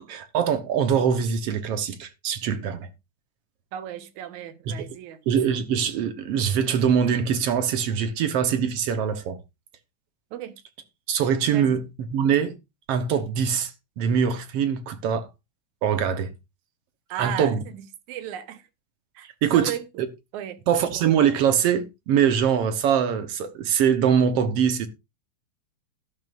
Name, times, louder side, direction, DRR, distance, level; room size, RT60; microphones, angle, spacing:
voice 1, 0.1-2.9 4.7-4.9 5.3-9.4 11.1-12.5 12.9-13.7 14.0-15.3 15.8-16.3 17.2-17.6 19.4-19.7 20.0-20.1 20.7-24.9, right 8 dB, 65° right, 1.9 m, -23 dB
voice 2, 3.7-5.2 10.3-10.6 11.5-11.8 17.1-18.7 19.2-19.8 20.3-20.6, right 11 dB, 90° right, 2.4 m, -35 dB
12.5 x 11.5 x 2.5 m
omnidirectional pair, 3.3 m